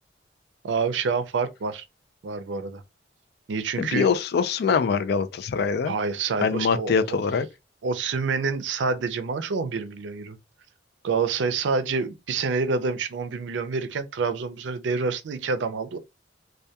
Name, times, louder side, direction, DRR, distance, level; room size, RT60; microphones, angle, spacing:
voice 1, 0.6-1.8 2.2-2.8 3.5-4.1 5.9-7.2 7.8-10.4 11.0-16.0, right 4 dB, 80° right, 0.4 m, -27 dB
voice 2, 3.8-5.9 6.4-7.5, left 5 dB, 60° left, 0.3 m, -23 dB
2.2 x 2.2 x 2.7 m
head